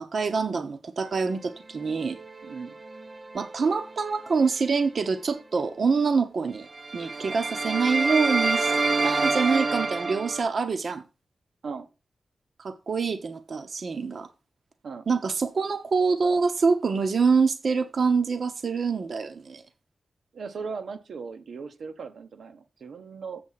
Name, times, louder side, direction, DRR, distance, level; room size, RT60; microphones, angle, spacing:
voice 1, 0.0-2.2 3.3-6.7 6.9-8.7 9.0-11.0 12.6-14.3 15.1-19.6, right 5 dB, 55° right, 0.9 m, -25 dB
sound 1, 2.1-3.9 4.3-4.5 6.7-10.4, right 3 dB, 30° right, 0.5 m, -27 dB
voice 2, 2.4-2.8 11.6-11.9 14.8-15.1 20.3-23.4, right 5 dB, 85° right, 1.0 m, -38 dB
7.9 x 6.8 x 5.7 m
wide cardioid pair, 175°, 0 cm